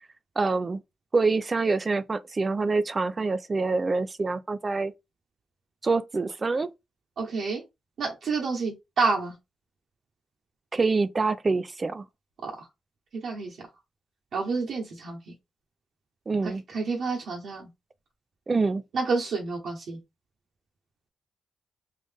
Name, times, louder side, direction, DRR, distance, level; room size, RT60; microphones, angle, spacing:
voice 1, 0.4-0.8 1.1-4.9 5.8-6.7 10.7-12.0 16.3-16.6 18.5-18.8, right 3 dB, 35° right, 0.5 m, -26 dB
voice 2, 7.2-7.6 8.0-9.3 12.4-12.5 13.2-13.6 14.3-15.2 16.4-17.7 18.9-20.0, right 4 dB, 70° right, 1.1 m, -29 dB
3.8 x 2.5 x 3.6 m
supercardioid pair, 60°, 0 cm